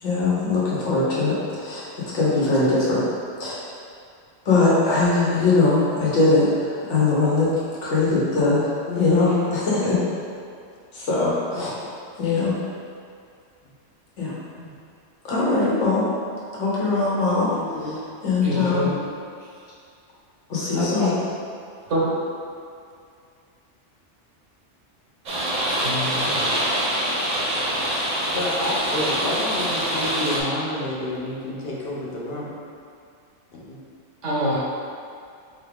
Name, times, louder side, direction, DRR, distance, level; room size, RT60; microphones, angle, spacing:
voice 1, 0.0-1.9 2.1-3.0 3.4-3.6 4.4-7.5 7.8-10.0 10.9-11.7 12.2-12.6 14.2-14.3 15.2-16.1 16.5-17.5 18.2-18.9 20.5-21.1, left 3 dB, 75° left, -7 dB, 1.4 m, -21 dB
voice 2, 8.9-9.6 11.5-11.8 14.6-14.7 17.5-18.0 20.7-21.2 28.3-32.5 33.5-33.8, left 1 dB, 60° left, -5 dB, 1.0 m, -29 dB
voice 3, 18.4-18.9 21.9-22.1 25.8-26.5 34.2-34.6, equal, 85° right, -5 dB, 1.3 m, -25 dB
sound 1, 25.3-30.4, right 1 dB, 45° right, 0.8 m, -24 dB
4.0 x 3.5 x 3.4 m, 2.3 s
omnidirectional pair, 1.2 m